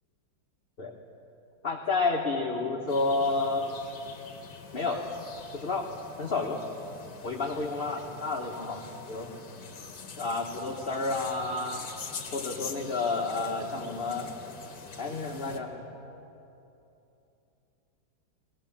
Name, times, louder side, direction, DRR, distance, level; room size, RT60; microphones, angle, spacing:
voice 1, 1.6-3.7 4.7-5.0 5.5-5.8 6.2-6.6 7.2-8.8 9.1-9.3 10.2-11.9 12.3-14.3 15.0-15.7, left 3 dB, 35° left, 0 dB, 1.2 m, -30 dB
sound 1, 2.9-15.6, left 5 dB, 50° left, 1.9 m, -44 dB
21.5 x 17.5 x 7.3 m, 2.9 s
omnidirectional pair, 2.3 m